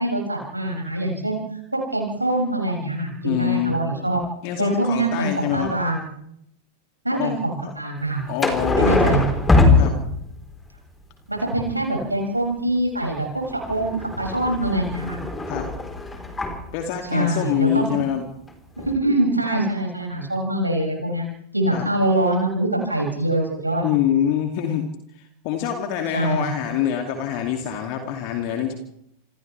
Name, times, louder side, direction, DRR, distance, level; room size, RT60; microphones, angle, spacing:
voice 1, 0.0-1.4 1.7-4.2 4.6-6.1 7.0-8.2 8.8-9.2 11.3-15.2 17.0-17.9 18.8-21.2 21.5-23.8 26.1-26.5, right 1 dB, 85° right, 0 dB, 6.7 m, -24 dB
voice 2, 3.2-3.8 4.4-5.7 7.1-7.7 8.3-9.2 9.8-10.0 15.5-15.7 16.7-18.3 21.7-21.9 23.8-24.9 25.1-28.7, left 9 dB, 45° left, 3 dB, 2.6 m, -25 dB
sound 1, 8.4-10.5 13.4-16.6 18.5-18.6 18.8-18.9, left 3 dB, 10° left, 4.1 m, -21 dB
28.0 x 27.0 x 3.4 m, 0.75 s
figure-of-eight pair, 90°, 0 cm